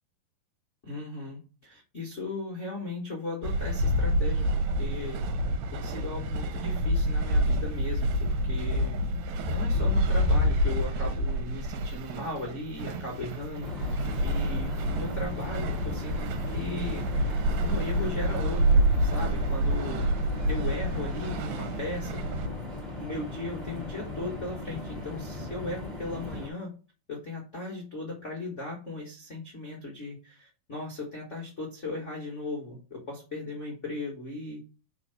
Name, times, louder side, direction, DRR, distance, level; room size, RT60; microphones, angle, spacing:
voice 1, 0.8-5.2 5.7-9.0 9.5-13.7 14.2-20.2 20.5-22.2 23.0-26.7 27.1-34.7, left 2 dB, 85° left, -2 dB, 0.6 m, -37 dB
sound 1, 3.4-22.5, equal, 85° right, 2.6 m, -28 dB
sound 2, 13.6-26.5, left 2 dB, 15° right, 2.2 m, -38 dB
4.6 x 4.3 x 5.7 m, 0.35 s
omnidirectional pair, 4.0 m